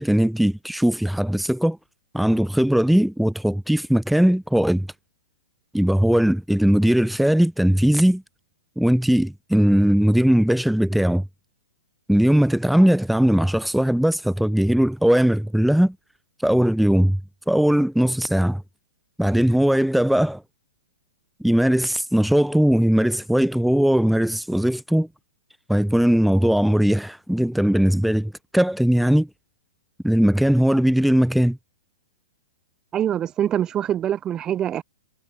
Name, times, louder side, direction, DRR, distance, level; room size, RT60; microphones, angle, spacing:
voice 1, 0.0-1.8 2.1-4.9 5.7-8.2 8.8-11.3 12.1-16.0 16.4-17.2 17.5-18.6 19.2-20.4 21.4-25.1 25.7-29.3 30.0-31.6, equal, ahead, 3.5 m, -19 dB
voice 2, 32.9-34.8, right 10 dB, 25° right, 6.2 m, -24 dB
figure-of-eight pair, 110°, 3 cm